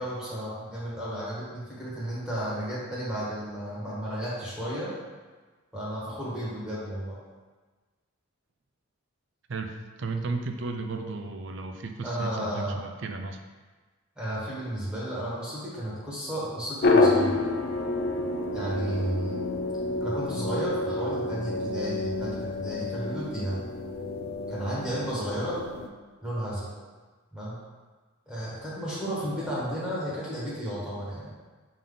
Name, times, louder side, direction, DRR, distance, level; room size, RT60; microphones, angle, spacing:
voice 1, 0.0-4.9 5.7-7.1 12.0-12.8 14.2-17.4 18.5-19.4 20.0-23.7 24.5-25.6 26.2-26.7 27.3-27.6 28.3-31.3, equal, 5° right, -9 dB, 1.4 m, -33 dB
voice 2, 9.5-13.4, right 3 dB, 55° right, 5 dB, 0.5 m, -34 dB
sound 1, 16.8-25.9, left 2 dB, 45° left, 0.5 m, -28 dB
6.8 x 3.8 x 3.8 m, 1.3 s
head